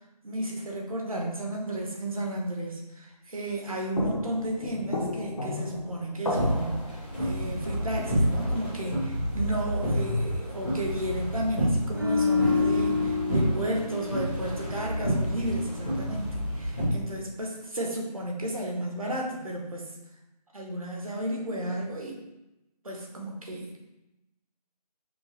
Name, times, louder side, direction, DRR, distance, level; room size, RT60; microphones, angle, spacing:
voice 1, 0.2-19.9 20.5-22.2 22.8-23.9, right 1 dB, 55° right, 0 dB, 0.9 m, -33 dB
sound 1, 3.7-3.8 4.0-9.8 12.5-13.3 14.9-15.0, left 2 dB, 50° left, 0.9 m, -36 dB
sound 2, 6.2-16.9, equal, 15° left, 0.8 m, -29 dB
sound 3, 11.9-15.2 15.5-15.8, left 4 dB, 30° right, 0.5 m, -28 dB
5.2 x 2.2 x 3.2 m, 0.95 s
figure-of-eight pair, 165°, 21 cm